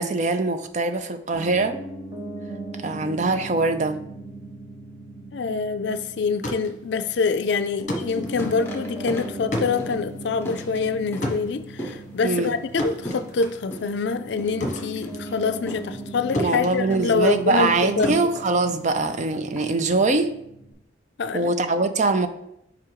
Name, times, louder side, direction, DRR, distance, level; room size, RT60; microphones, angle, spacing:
voice 1, 0.0-1.8 2.8-4.0 12.2-12.5 16.3-20.3 21.3-22.3, right 3 dB, 40° right, 9 dB, 0.4 m, -23 dB
Piano, 1.3-20.7, right 2 dB, 20° right, 0.9 m, -39 dB
voice 2, 5.3-18.2 21.2-21.5, left 4 dB, 65° left, 11 dB, 0.4 m, -25 dB
sound 1, 6.2-16.1 16.3-19.3, left 1 dB, 40° left, 1.1 m, -33 dB
sound 2, 7.9-20.2, equal, 10° left, 1.0 m, -40 dB
4.9 x 4.9 x 4.6 m, 0.80 s
head